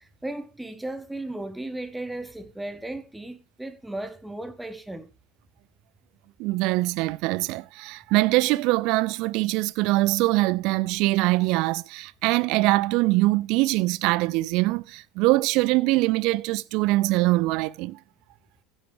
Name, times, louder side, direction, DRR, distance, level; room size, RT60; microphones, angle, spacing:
voice 1, 0.0-5.1, right 1 dB, 5° right, 1.5 m, -35 dB
voice 2, 6.4-18.0, right 20 dB, 55° right, 0.5 m, -23 dB
15.5 x 8.0 x 3.6 m
figure-of-eight pair, 70°, 0 cm